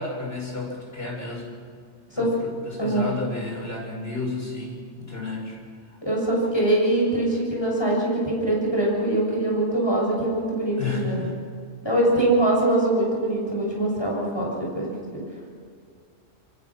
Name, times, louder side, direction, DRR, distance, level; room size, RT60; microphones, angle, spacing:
voice 1, 0.0-1.6 2.1-5.6 10.8-11.4, left 3 dB, 50° left, -1 dB, 6.5 m, -32 dB
voice 2, 6.0-11.2 11.8-15.2, right 1 dB, 20° left, -3 dB, 6.9 m, -23 dB
28.0 x 23.0 x 6.1 m, 2.2 s
omnidirectional pair, 1.3 m